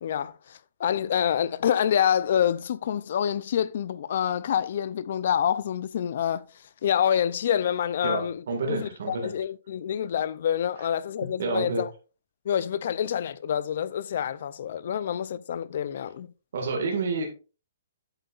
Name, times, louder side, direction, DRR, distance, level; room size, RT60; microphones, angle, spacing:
voice 1, 0.0-6.4 6.8-11.9 12.5-16.3, left 9 dB, 45° left, 0.5 m, -27 dB
voice 2, 8.0-9.3 10.8-10.9 11.4-11.8 16.5-17.3, right 3 dB, 55° right, 1.9 m, -29 dB
8.1 x 7.9 x 2.5 m
hypercardioid pair, 175°, 0 cm